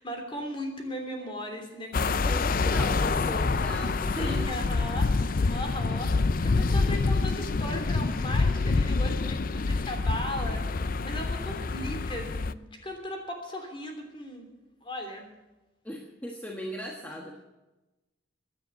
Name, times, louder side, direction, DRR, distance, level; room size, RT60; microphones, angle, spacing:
voice 1, 0.0-2.7 4.1-14.5 14.8-15.3, left 1 dB, 25° left, 4 dB, 3.1 m, -37 dB
sound 1, 1.9-12.5, left 3 dB, 45° left, 0.5 m, -27 dB
voice 2, 2.2-4.5 15.8-17.4, equal, 10° left, 0 dB, 1.4 m, -38 dB
16.5 x 10.5 x 7.5 m, 1.1 s
head